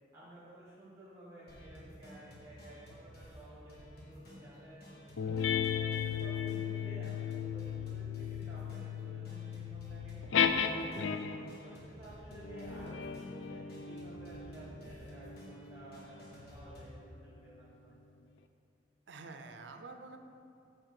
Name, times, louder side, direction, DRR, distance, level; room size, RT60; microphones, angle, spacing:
voice 1, 0.1-5.6 6.0-10.2 10.6-18.0, right 1 dB, 15° right, -9 dB, 1.3 m, -53 dB
sound 1, 1.5-17.0, equal, 55° left, 1.5 m, -53 dB
sound 2, 5.2-11.6 12.3-17.2, left 7 dB, 90° left, 0.4 m, -36 dB
voice 2, 14.5-14.9 19.1-20.2, right 3 dB, 70° right, 6 dB, 0.6 m, -49 dB
6.5 x 4.5 x 6.2 m, 2.6 s
head